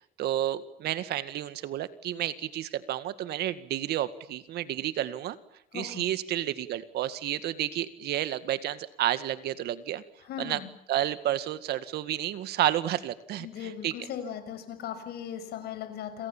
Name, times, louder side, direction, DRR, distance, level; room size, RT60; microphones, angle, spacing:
voice 1, 0.2-5.4 5.7-10.0 10.4-10.6 10.9-13.9, right 12 dB, 75° right, 12 dB, 1.9 m, -31 dB
voice 2, 5.7-6.1 10.2-10.7 13.4-16.3, left 9 dB, 75° left, 9 dB, 6.7 m, -38 dB
29.0 x 27.5 x 7.4 m, 0.72 s
cardioid pair, 110°, 17 cm